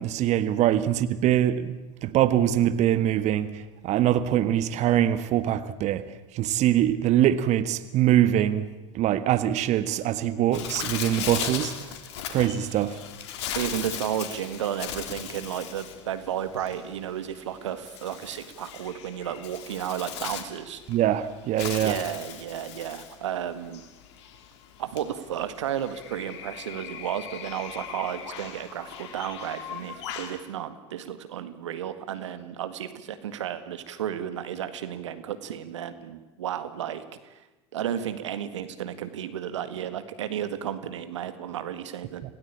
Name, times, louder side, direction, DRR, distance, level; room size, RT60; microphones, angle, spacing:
voice 1, 0.0-6.0 6.3-8.7 8.9-11.7 12.3-13.0 20.9-22.0, right 11 dB, 50° right, 1.5 m, -23 dB
Bird, 10.5-30.4, left 9 dB, 70° left, 2.9 m, -38 dB
voice 2, 13.5-20.8 21.8-23.8 24.8-37.3 37.7-42.2, right 10 dB, 80° right, 1.8 m, -33 dB
27.0 x 17.5 x 8.7 m
hypercardioid pair, 80°, 15 cm